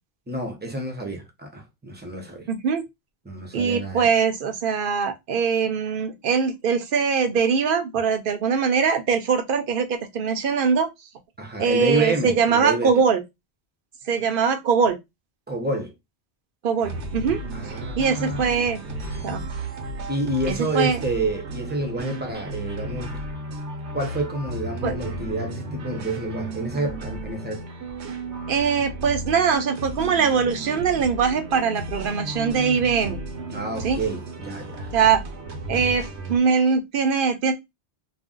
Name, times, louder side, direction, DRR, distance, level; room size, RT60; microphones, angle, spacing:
voice 1, 0.3-2.5 3.2-4.1 11.4-12.9 15.5-15.9 17.5-18.4 20.1-23.1 23.9-27.7 33.5-34.9, right 2 dB, 15° right, 0.4 m, -28 dB
voice 2, 2.5-2.9 3.5-10.9 11.6-13.2 14.1-15.0 16.6-17.4 18.0-18.8 19.2-19.4 20.5-21.0 24.8-25.0 28.5-33.2 33.8-34.0 34.9-35.2 35.7-37.5, right 6 dB, 60° right, 0.6 m, -22 dB
sound 1, 16.8-36.4, right 2 dB, 85° right, 1.0 m, -34 dB
2.5 x 2.0 x 3.6 m
omnidirectional pair, 1.1 m